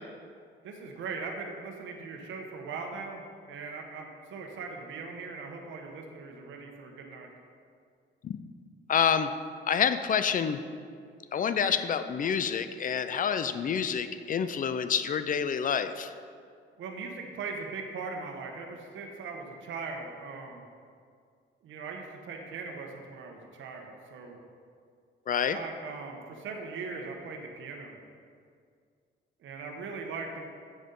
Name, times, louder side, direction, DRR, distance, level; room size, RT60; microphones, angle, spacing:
voice 1, 0.6-3.2 3.5-7.3 11.6-11.8 16.8-20.6 21.6-24.4 25.5-28.0 29.4-30.5, right 4 dB, 75° right, 2 dB, 1.1 m, -40 dB
voice 2, 8.9-9.3 9.7-10.6 11.3-16.1 25.3-25.6, left 7 dB, 45° left, 11 dB, 0.5 m, -28 dB
8.6 x 6.6 x 3.9 m, 2.2 s
cardioid pair, 90°, 20 cm